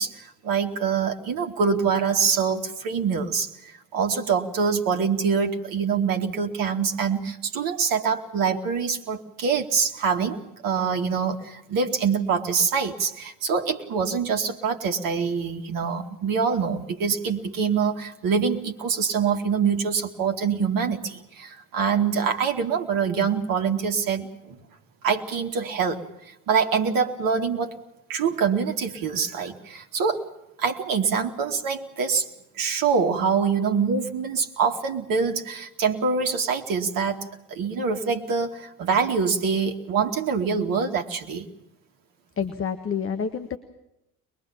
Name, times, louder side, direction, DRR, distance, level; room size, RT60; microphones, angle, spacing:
voice 1, 0.0-24.6 25.0-27.7 28.1-30.3 30.6-32.3 32.5-41.5, right 6 dB, 50° right, 4 dB, 2.4 m, -25 dB
voice 2, 42.4-43.6, left 6 dB, 30° left, 8 dB, 1.6 m, -28 dB
22.5 x 22.5 x 7.3 m, 0.85 s
figure-of-eight pair, 55°, 44 cm